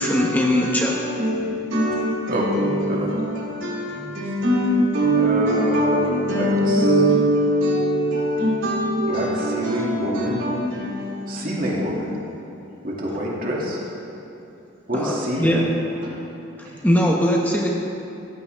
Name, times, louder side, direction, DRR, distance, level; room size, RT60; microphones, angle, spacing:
voice 1, 0.0-1.0 14.9-15.7 16.6-17.7, equal, 10° left, -2 dB, 1.0 m, -21 dB
voice 2, 0.6-11.4, right 1 dB, 65° right, -5 dB, 3.8 m, -22 dB
voice 3, 5.1-6.9 9.1-10.6 11.3-12.2 12.8-13.8 14.9-15.6, equal, 40° right, -4 dB, 2.5 m, -26 dB
16.5 x 15.0 x 3.6 m, 2.9 s
head